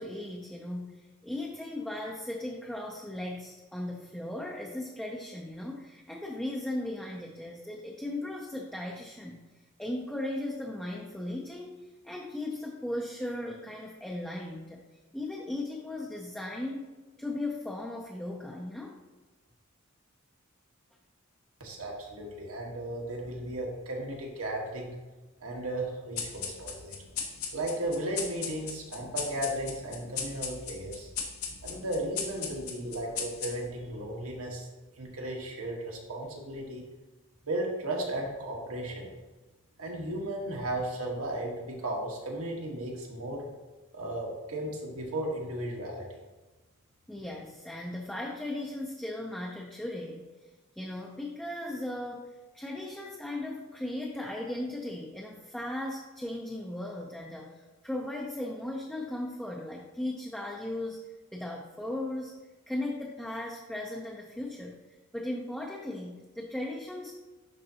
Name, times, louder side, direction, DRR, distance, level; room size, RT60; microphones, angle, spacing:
voice 1, 0.0-9.4 9.8-14.8 15.1-16.9 17.2-19.0 47.1-50.3 50.8-62.3 62.7-64.8 65.1-67.1, left 1 dB, 5° left, -1 dB, 0.5 m, -37 dB
voice 2, 21.6-24.9 25.4-27.0 27.5-31.1 31.6-34.7 35.0-36.8 37.4-39.1 39.8-43.5 43.9-46.1, right 1 dB, 75° right, -1 dB, 1.4 m, -35 dB
sound 1, 26.2-33.9, left 6 dB, 75° left, 1.0 m, -38 dB
11.0 x 3.8 x 2.8 m, 1.2 s
head